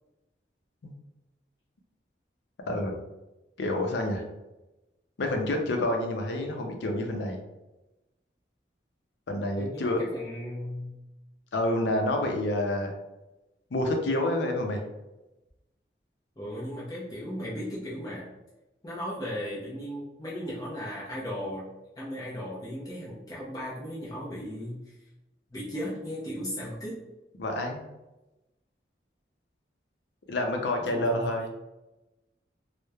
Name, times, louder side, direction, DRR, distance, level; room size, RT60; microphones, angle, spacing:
voice 1, 2.7-3.0 3.6-4.2 5.2-7.4 9.3-10.0 11.5-12.9 13.7-14.9 27.4-27.8 30.3-31.5, left 1 dB, 75° left, 3 dB, 0.5 m, -28 dB
voice 2, 9.5-10.9 16.4-18.3 18.8-21.6 22.0-24.9 25.5-27.0 30.9-31.3, equal, 20° left, -7 dB, 0.5 m, -36 dB
3.0 x 2.1 x 2.3 m, 1.0 s
head